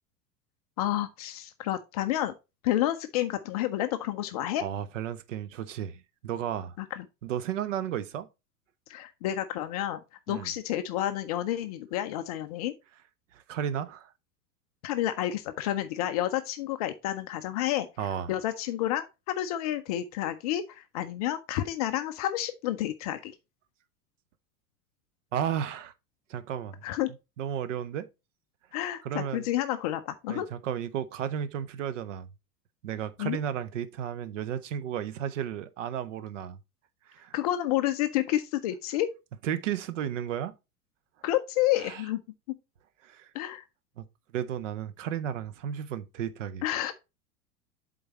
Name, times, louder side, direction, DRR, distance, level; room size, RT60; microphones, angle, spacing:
voice 1, 0.8-2.3 2.6-4.6 6.8-7.0 8.9-10.0 10.3-12.7 14.8-23.3 26.8-27.1 28.7-30.5 33.2-33.4 37.3-39.1 41.2-42.2 43.3-43.6 46.6-46.9, left 13 dB, 25° left, 0.4 m, -30 dB
voice 2, 4.6-6.8 7.2-8.3 10.3-10.5 13.3-14.1 18.0-18.3 25.3-25.9 26.3-26.8 27.4-28.1 29.0-29.5 30.3-32.3 32.8-36.6 37.1-37.3 39.4-40.5 41.8-42.0 43.0-43.3 44.0-44.1 44.3-46.6, right 9 dB, 55° right, 0.8 m, -33 dB
7.8 x 3.9 x 4.1 m
figure-of-eight pair, 90°, 46 cm